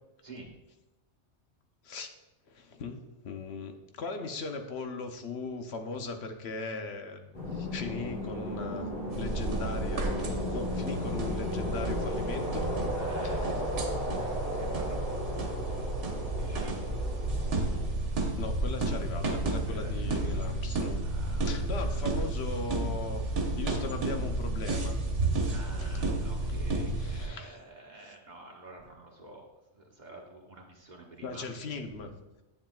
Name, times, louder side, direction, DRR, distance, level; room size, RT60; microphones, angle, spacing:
voice 1, 2.5-12.8 13.2-13.6 18.4-21.1 21.4-25.0 25.8-26.0 26.9-27.6 28.0-28.1 31.2-32.1, left 3 dB, 65° left, 5 dB, 1.0 m, -39 dB
sound 1, 7.3-17.9, left 1 dB, 45° left, 1.9 m, -35 dB
sound 2, 9.1-27.3, right 2 dB, 80° right, 1.4 m, -32 dB
voice 2, 13.0-16.8 19.7-20.6 21.0-22.1 25.5-29.4 29.7-31.5 31.9-32.0, right 1 dB, 40° right, -1 dB, 1.5 m, -49 dB
10.5 x 7.3 x 2.4 m, 1.0 s
omnidirectional pair, 1.2 m